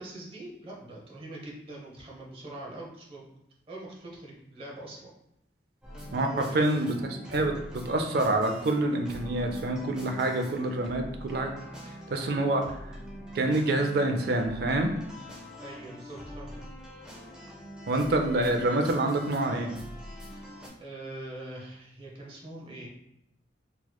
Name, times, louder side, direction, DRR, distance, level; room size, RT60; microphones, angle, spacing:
voice 1, 0.0-3.3 3.7-5.1 6.2-6.6 12.1-12.3 15.6-16.6 20.1-20.4 20.8-22.9, right 1 dB, 30° right, -3 dB, 0.8 m, -43 dB
sound 1, 5.8-20.7, equal, 5° right, 0.6 m, -44 dB
voice 2, 6.1-11.5 12.1-13.0 13.3-15.0 17.9-19.7, right 2 dB, 60° right, 4 dB, 0.4 m, -27 dB
3.9 x 2.9 x 2.2 m, 0.80 s
head